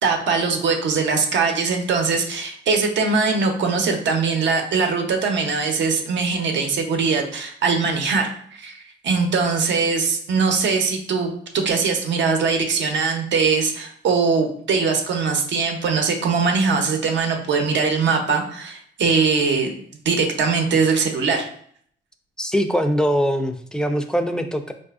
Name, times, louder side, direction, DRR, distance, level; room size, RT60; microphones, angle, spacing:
voice 1, 0.0-8.8 9.0-19.7 20.0-21.5, right 4 dB, 65° right, 3 dB, 0.7 m, -21 dB
voice 2, 22.4-24.7, equal, 5° left, 7 dB, 0.3 m, -22 dB
4.0 x 2.5 x 2.4 m, 0.62 s
cardioid pair, 90°, 20 cm